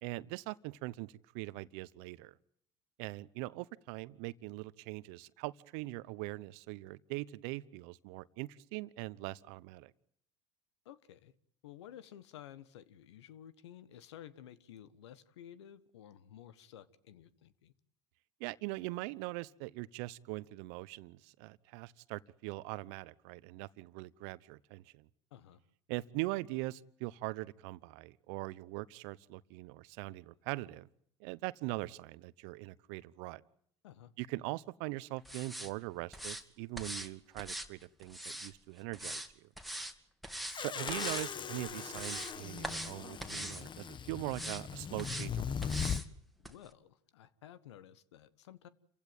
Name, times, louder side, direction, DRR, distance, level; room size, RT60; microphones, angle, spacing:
voice 1, 0.0-2.3 3.0-9.9 18.4-25.1 25.9-30.9 31.2-33.4 34.2-39.5 40.6-45.9, right 20 dB, 70° right, 18 dB, 0.9 m, -42 dB
voice 2, 10.8-11.3 11.6-17.7 25.3-25.6 33.8-34.1 46.4-48.7, left 10 dB, 85° left, 15 dB, 1.4 m, -53 dB
sound 1, 35.3-35.7 36.1-36.4 36.8-37.1 37.4-38.5 38.9-39.3 39.6-39.9 40.2-40.6 40.9-41.3 41.7-42.3 42.6-42.9 43.2-43.6 44.3-44.6 45.0-45.3 45.6-46.1 46.4-46.5, right 1 dB, ahead, 2.6 m, -41 dB
sound 2, 40.5-46.0, left 7 dB, 35° left, 1.2 m, -39 dB
28.5 x 16.0 x 9.0 m, 0.68 s
hypercardioid pair, 85°, 14 cm